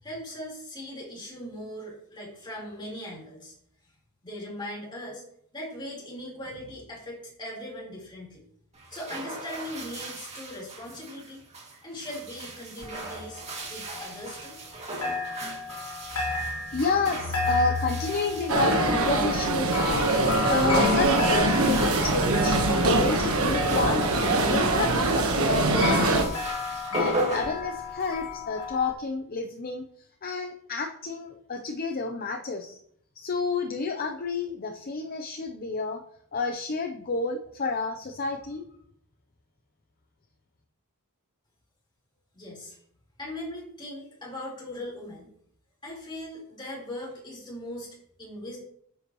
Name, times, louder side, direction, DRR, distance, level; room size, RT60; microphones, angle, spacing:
voice 1, 0.0-3.5 4.2-5.2 5.5-8.4 8.9-11.4 11.8-13.4 13.7-14.6 42.3-42.8 43.2-45.3 45.8-48.6, left 1 dB, 20° left, -5 dB, 4.0 m, -39 dB
sound 1, 8.7-28.3, right 2 dB, 30° right, 2.4 m, -38 dB
sound 2, 12.8-14.7 15.0-28.9, left 5 dB, 75° left, 2.9 m, -34 dB
voice 2, 16.3-20.0 20.5-26.3 26.9-29.8 30.2-32.8 33.2-36.0 36.3-38.6, left 4 dB, 45° left, 4 dB, 0.7 m, -30 dB
sound 3, 18.5-26.2, right 2 dB, 70° right, 1.3 m, -23 dB
9.8 x 8.1 x 3.1 m, 0.68 s
head